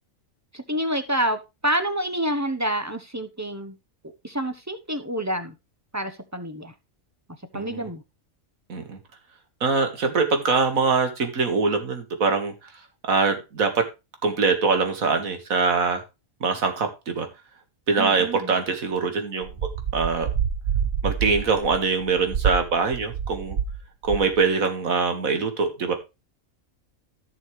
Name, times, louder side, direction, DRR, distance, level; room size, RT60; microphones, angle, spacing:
voice 1, 0.5-3.8 4.2-5.5 5.9-6.7 7.5-8.0 18.0-18.5, right 1 dB, 15° right, 9 dB, 0.9 m, -28 dB
voice 2, 7.5-7.9 8.7-9.0 9.6-12.5 13.0-13.9 14.2-16.0 16.4-17.3 17.9-19.5 19.9-20.3 21.0-23.6 24.0-25.9, right 4 dB, 85° right, 6 dB, 2.1 m, -23 dB
sound 1, 19.4-23.8 24.0-24.4, right 7 dB, 50° right, 1.1 m, -27 dB
14.5 x 6.3 x 3.3 m, 0.25 s
omnidirectional pair, 1.4 m